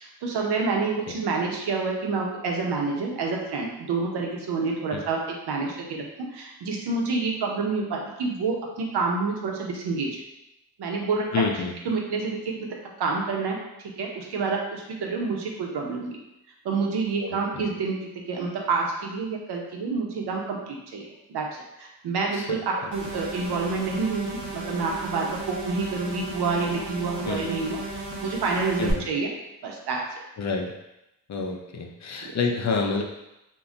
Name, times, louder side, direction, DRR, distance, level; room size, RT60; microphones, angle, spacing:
voice 1, 0.0-10.2 10.8-11.3 11.8-16.1 16.6-29.3 29.6-30.0, right 4 dB, 70° right, 0 dB, 0.7 m, -28 dB
voice 2, 11.3-11.7 17.2-17.6 22.3-22.6 27.3-27.5 28.8-29.1 30.4-30.7 31.3-33.0, left 4 dB, 45° left, 1 dB, 0.5 m, -28 dB
sound 1, 22.9-28.9, right 2 dB, 45° right, 0.9 m, -35 dB
2.2 x 2.1 x 3.7 m, 0.91 s
cardioid pair, 65°, 41 cm